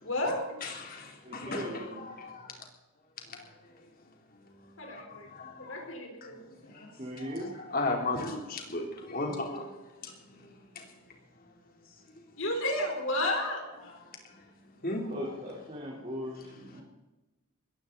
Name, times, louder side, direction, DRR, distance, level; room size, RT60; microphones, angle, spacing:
voice 1, 0.0-0.6 4.8-5.3 5.6-6.4 6.8-6.9 12.4-13.6, left 1 dB, 65° left, 2 dB, 4.4 m, -32 dB
voice 2, 0.6-1.1 1.3-2.3 5.4-5.8 7.2-9.6 14.8-15.0, left 2 dB, 45° left, 1 dB, 3.5 m, -34 dB
voice 3, 1.2-2.0 7.0-7.6 15.1-16.8, equal, 35° right, -5 dB, 4.0 m, -39 dB
20.5 x 15.0 x 4.1 m, 1.1 s
head